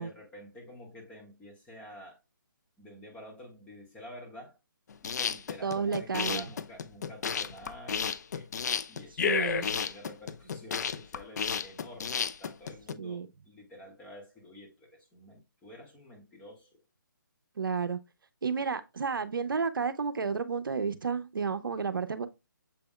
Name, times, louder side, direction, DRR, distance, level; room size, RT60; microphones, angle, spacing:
voice 1, 0.0-2.2 2.8-4.6 5.0-8.5 8.9-16.8, left 1 dB, 10° left, 1.4 m, -49 dB
sound 1, 4.9-12.9, left 7 dB, 50° left, 0.4 m, -32 dB
voice 2, 5.6-6.4 9.2-9.6 13.0-13.3 17.6-18.0 18.4-22.3, right 5 dB, 75° right, 0.6 m, -31 dB
6.9 x 3.4 x 2.2 m
figure-of-eight pair, 150°, 11 cm